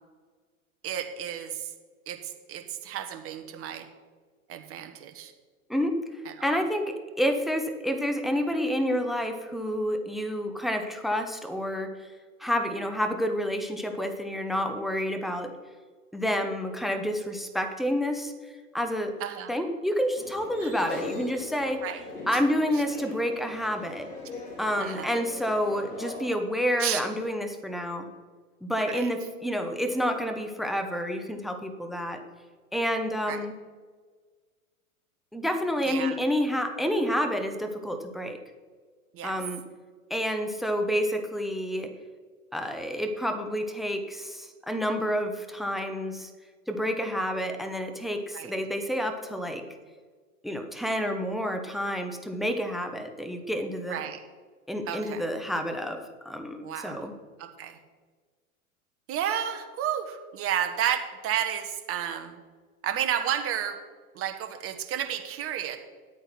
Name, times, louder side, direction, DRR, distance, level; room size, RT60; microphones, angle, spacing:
voice 1, 0.8-1.7 2.1-3.9 4.5-5.3 6.2-6.3 19.2-19.5 20.6-20.7 21.8-22.0 24.8-25.1 26.8-27.0 28.9-29.1 33.3-33.4 35.9-36.2 39.1-39.3 48.3-48.5 53.9-54.2 54.9-55.2 56.6-57.0 57.4-57.8 59.1-62.4 62.8-63.8 64.1-65.8, right 10 dB, 30° right, 7 dB, 1.3 m, -31 dB
voice 2, 5.7-12.1 12.4-15.5 16.1-18.3 18.7-19.1 19.5-21.8 22.3-24.1 24.6-28.1 28.6-32.2 32.7-33.5 35.3-38.4 39.2-39.6 40.1-41.9 42.5-46.3 46.7-49.6 50.4-54.0 54.7-57.1, equal, ahead, 6 dB, 0.9 m, -29 dB
sound 1, 20.1-26.3, left 3 dB, 85° left, 2.6 m, -41 dB
10.5 x 8.6 x 6.1 m, 1.5 s
hypercardioid pair, 100°, 44 cm